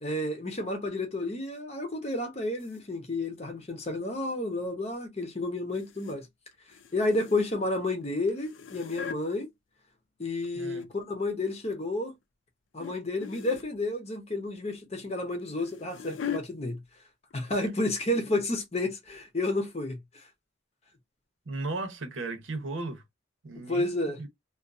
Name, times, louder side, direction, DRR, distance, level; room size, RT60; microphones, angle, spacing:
voice 1, 0.0-6.3 6.9-9.5 10.2-12.1 12.7-16.8 17.3-20.2 23.7-24.2, left 2 dB, 30° left, 0.8 m, -31 dB
sound 1, 2.6-2.8 5.7-6.2 6.5-7.7 8.3-9.2 10.2-11.0 11.5-11.8 12.8-12.9 13.2-13.7 15.2-16.4 17.3-17.5 17.8-17.9 18.4-18.5, left 8 dB, 70° left, 0.4 m, -40 dB
voice 2, 10.5-10.9 21.5-23.0 23.4-24.3, right 2 dB, 80° right, 0.8 m, -36 dB
2.6 x 2.4 x 2.3 m
head